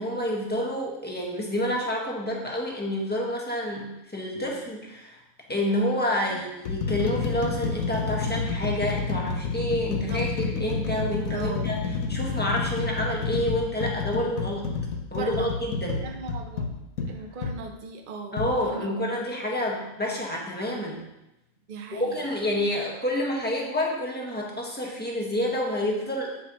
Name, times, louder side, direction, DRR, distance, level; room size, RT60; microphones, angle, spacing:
voice 1, 0.0-5.2 5.5-11.8 12.1-14.7 15.1-16.0 18.3-21.0 21.9-26.4, left 1 dB, 5° left, -2 dB, 1.4 m, -28 dB
sound 1, 4.4-4.6 5.5-5.6 6.3-17.6 18.4-18.5, left 4 dB, 70° left, 1.2 m, -29 dB
voice 2, 11.3-11.8 15.1-15.5 16.0-16.7 17.1-18.4 18.6-19.0 21.7-22.3 22.6-22.7, right 4 dB, 45° right, 3 dB, 0.8 m, -38 dB
8.4 x 8.0 x 3.0 m, 0.92 s
omnidirectional pair, 1.5 m